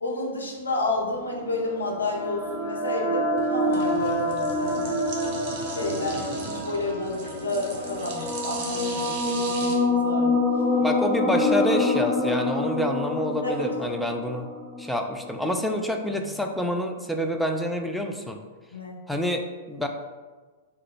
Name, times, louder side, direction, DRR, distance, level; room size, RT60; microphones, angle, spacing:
voice 1, 0.0-5.0 5.6-10.4 13.4-14.0 18.7-19.0, left 2 dB, 80° left, -2 dB, 0.7 m, -31 dB
sound 1, 0.8-9.8, right 3 dB, 45° right, 0.7 m, -39 dB
sound 2, 1.3-15.4, left 1 dB, 30° left, 0.8 m, -27 dB
voice 2, 10.8-14.5 14.8-18.4 19.1-19.9, left 1 dB, ahead, 3 dB, 0.3 m, -27 dB
3.1 x 2.2 x 3.8 m, 1.4 s
figure-of-eight pair, 105°, 0 cm